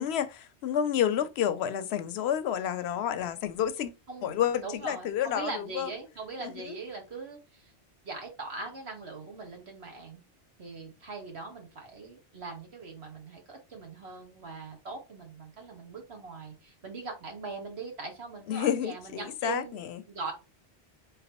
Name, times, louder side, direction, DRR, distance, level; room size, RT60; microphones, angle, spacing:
voice 1, 0.0-3.9 4.2-5.9 6.4-6.5 18.5-20.0, left 9 dB, 75° left, 0.8 m, -30 dB
voice 2, 4.6-7.7 8.0-10.2 10.6-20.3, right 4 dB, 75° right, 1.8 m, -41 dB
3.9 x 3.6 x 2.9 m
omnidirectional pair, 1.1 m